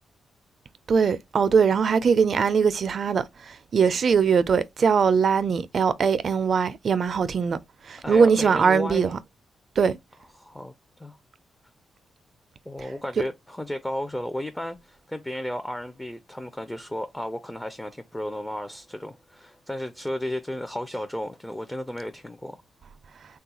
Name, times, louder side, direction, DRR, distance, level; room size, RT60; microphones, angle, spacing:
voice 1, 0.9-3.2 3.7-7.6 7.9-9.1 9.8-10.0, right 6 dB, 55° right, 0.4 m, -21 dB
voice 2, 8.0-9.1 10.4-11.2 12.7-22.6, left 1 dB, 10° left, 0.4 m, -33 dB
3.3 x 2.3 x 2.8 m
cardioid pair, 90°, 0 cm